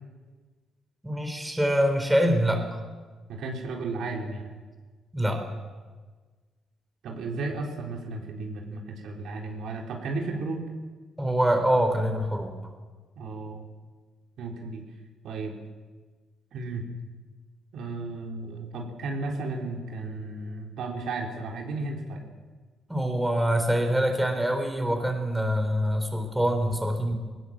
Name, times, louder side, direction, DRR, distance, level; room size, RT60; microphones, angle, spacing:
voice 1, 1.0-2.7 5.1-5.4 11.2-12.5 22.9-27.1, equal, 5° right, 4 dB, 4.0 m, -25 dB
voice 2, 3.3-4.5 7.0-10.6 13.2-13.6 14.4-14.8 15.2-15.6 16.5-16.8 17.7-22.2, right 3 dB, 75° right, 0 dB, 4.0 m, -34 dB
19.5 x 18.5 x 7.6 m, 1.4 s
cardioid pair, 90°, 0 cm